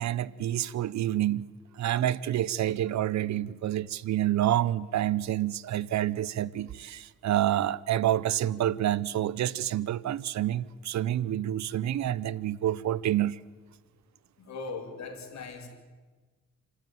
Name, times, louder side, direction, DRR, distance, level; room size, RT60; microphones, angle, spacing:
voice 1, 0.0-1.5 1.8-13.4, right 12 dB, 65° right, 0.8 m, -28 dB
voice 2, 14.4-15.7, left 4 dB, 60° left, 5.2 m, -39 dB
28.0 x 13.5 x 9.3 m
cardioid pair, 90°, 30 cm